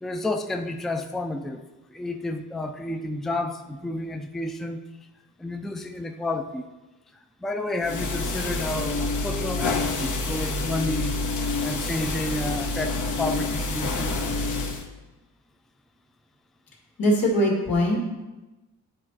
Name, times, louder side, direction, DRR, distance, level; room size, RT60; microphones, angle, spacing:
voice 1, 0.0-1.6 1.9-4.8 5.4-6.7 7.4-11.2 11.6-14.2, left 2 dB, ahead, 5 dB, 0.4 m, -30 dB
sound 1, 7.8-14.8, left 3 dB, 60° left, 1.1 m, -28 dB
voice 2, 17.0-18.0, equal, 80° left, -2 dB, 2.0 m, -21 dB
9.7 x 4.3 x 4.0 m, 1.1 s
cardioid pair, 85°, 34 cm